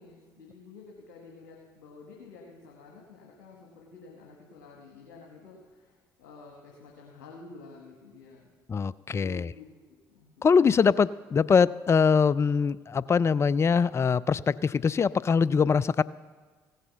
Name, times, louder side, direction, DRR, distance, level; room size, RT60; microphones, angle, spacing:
voice 1, 0.0-8.5 9.1-9.7 10.1-10.3 10.9-11.0, left 4 dB, 80° left, -1 dB, 1.4 m, -50 dB
voice 2, 8.7-9.5 10.4-16.0, left 6 dB, 30° left, 19 dB, 0.3 m, -23 dB
15.5 x 6.6 x 7.0 m, 1.4 s
hypercardioid pair, 50°, 10 cm